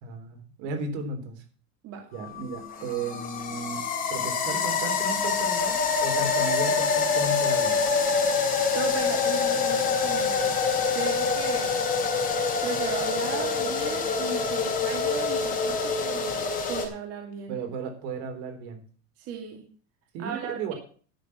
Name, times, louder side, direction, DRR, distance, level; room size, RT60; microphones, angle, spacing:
voice 1, 0.0-1.4 2.1-3.8 4.1-7.8 17.5-18.8 20.1-20.7, right 3 dB, 65° right, 6 dB, 3.5 m, -34 dB
sound 1, 2.2-16.9, left 5 dB, 25° left, 3.4 m, -26 dB
voice 2, 8.7-10.7 10.9-11.8 12.6-17.6 19.2-19.6 20.2-20.6, right 8 dB, 40° right, 2 dB, 2.5 m, -36 dB
11.5 x 6.7 x 8.2 m, 0.43 s
supercardioid pair, 155°, 37 cm